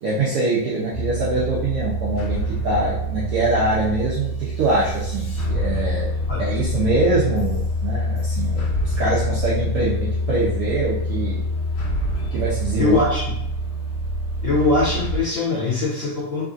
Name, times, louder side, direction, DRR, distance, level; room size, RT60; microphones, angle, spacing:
voice 1, 0.0-11.4 12.2-13.0, right 2 dB, 80° right, -7 dB, 1.3 m, -24 dB
sound 1, 0.9-15.2, equal, 60° left, 1.3 m, -25 dB
voice 2, 12.8-13.2 14.4-16.4, left 3 dB, 85° left, -7 dB, 1.0 m, -21 dB
4.7 x 2.6 x 2.4 m, 0.73 s
omnidirectional pair, 3.5 m